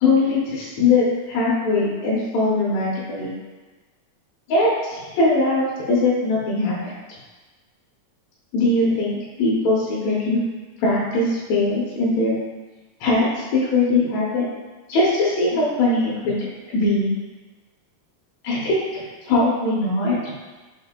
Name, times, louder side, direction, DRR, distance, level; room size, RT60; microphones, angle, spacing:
voice 1, 0.0-3.3 4.5-6.9 8.5-10.4 10.8-12.4 13.0-14.5 14.9-16.4 16.7-17.1 18.4-20.3, left 2 dB, 70° left, -6 dB, 1.8 m, -21 dB
5.3 x 2.7 x 3.6 m, 1.3 s
omnidirectional pair, 3.8 m